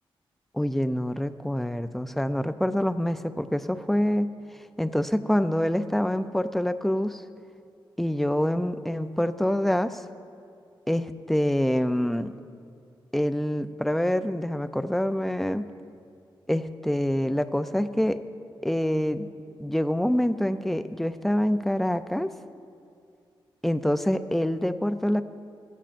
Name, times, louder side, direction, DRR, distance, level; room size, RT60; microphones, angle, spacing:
voice 1, 0.5-4.3 4.8-7.2 8.0-10.0 10.9-12.3 13.1-15.6 16.5-18.2 18.6-19.3 19.6-22.3 23.6-25.2, equal, ahead, 10 dB, 0.4 m, -26 dB
17.5 x 13.5 x 2.5 m, 2.4 s
wide cardioid pair, 125°, 9 cm